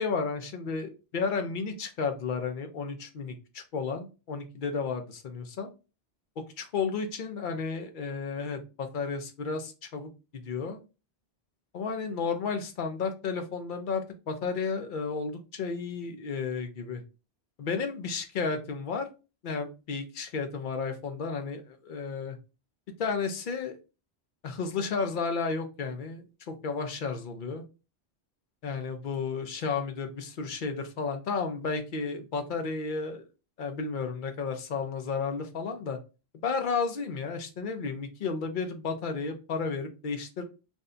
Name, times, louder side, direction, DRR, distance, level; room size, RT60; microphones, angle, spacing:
voice 1, 0.0-5.7 6.4-10.8 11.7-17.0 17.6-19.1 19.4-22.4 23.0-23.8 24.4-27.6 28.6-33.2 33.6-36.0 36.4-40.4, left 5 dB, 55° left, 6 dB, 0.7 m, -32 dB
2.6 x 2.2 x 3.7 m, 0.30 s
omnidirectional pair, 1.1 m